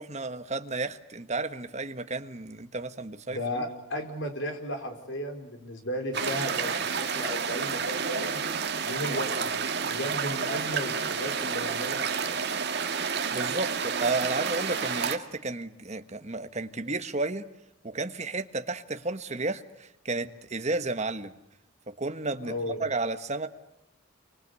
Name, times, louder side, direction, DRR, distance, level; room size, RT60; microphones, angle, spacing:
voice 1, 0.0-3.7 13.3-17.5 17.8-21.3 21.9-23.5, right 3 dB, 30° right, 1.3 m, -32 dB
voice 2, 3.3-8.4 8.9-12.4 22.4-22.8, equal, 60° left, 4.8 m, -35 dB
sound 1, 6.1-15.2, right 6 dB, 50° right, 2.0 m, -30 dB
28.5 x 25.0 x 8.3 m
head